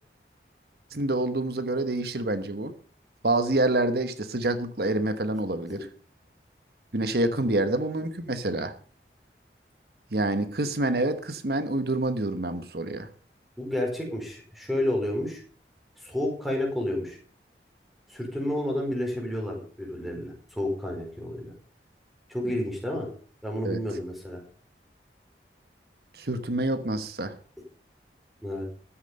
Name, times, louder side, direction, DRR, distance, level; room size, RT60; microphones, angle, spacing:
voice 1, 0.9-2.7 3.2-5.9 6.9-8.7 10.1-13.1 23.6-23.8 26.1-27.3, right 2 dB, 60° right, 10 dB, 1.2 m, -27 dB
voice 2, 13.6-15.4 16.0-17.2 18.1-21.5 22.3-23.1 23.4-24.4 28.4-28.7, left 1 dB, ahead, 0 dB, 4.6 m, -30 dB
13.5 x 10.0 x 5.5 m, 0.43 s
head